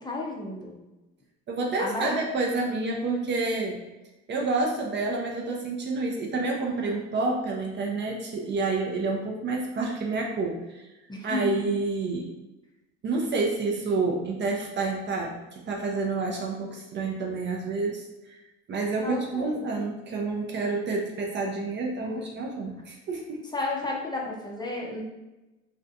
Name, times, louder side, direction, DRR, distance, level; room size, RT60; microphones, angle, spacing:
voice 1, 0.0-0.8 1.8-2.3 11.1-11.6 19.0-19.5 22.0-22.2 23.5-25.0, left 2 dB, 15° left, -2 dB, 0.5 m, -32 dB
voice 2, 1.5-3.8 4.3-10.9 11.2-12.3 13.0-18.4 18.7-23.4, right 3 dB, 35° right, 0 dB, 0.5 m, -29 dB
2.4 x 2.2 x 2.6 m, 1.1 s
supercardioid pair, 80°, 31 cm